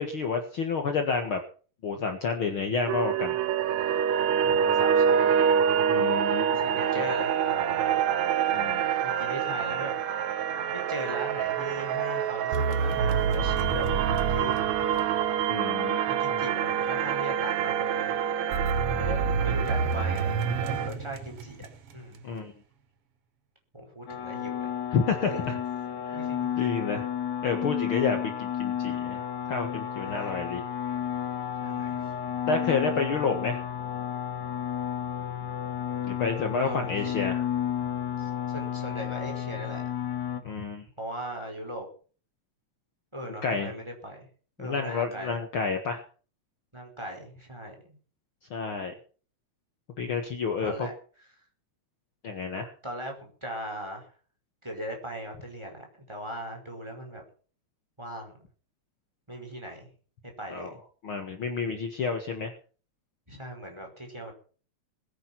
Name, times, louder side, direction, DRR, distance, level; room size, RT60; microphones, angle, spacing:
voice 1, 0.0-1.4 1.8-3.4 5.9-6.8 8.5-8.8 15.5-16.1 22.2-22.5 24.9-25.6 26.0-26.2 26.6-27.1 27.4-30.6 32.5-33.6 36.0-37.4 40.4-40.9 43.4-43.7 44.6-46.0 48.5-48.9 50.0-50.9 52.2-52.7 60.5-60.7 61.0-62.5, left 5 dB, 50° left, 5 dB, 2.2 m, -30 dB
sound 1, 2.9-20.9, right 8 dB, 75° right, 2.2 m, -26 dB
voice 2, 4.4-5.3 6.5-8.0 9.0-10.0 10.7-15.0 16.1-18.2 18.9-21.6 21.9-22.2 23.7-24.7 25.3-25.5 26.1-26.5 30.0-30.4 31.6-32.0 36.6-36.9 38.2-40.1 41.0-41.9 43.1-44.3 44.6-45.4 46.7-47.8 50.6-50.9 52.8-54.1 54.6-57.2 58.0-58.4 59.3-59.9 60.4-60.8 63.3-64.3, equal, 10° right, 2 dB, 5.2 m, -39 dB
sound 2, 12.5-15.5 18.5-21.9, right 4 dB, 55° right, 2.1 m, -29 dB
sound 3, 24.1-40.4, left 9 dB, 75° left, 3.1 m, -32 dB
21.0 x 9.5 x 5.9 m, 0.41 s
omnidirectional pair, 3.3 m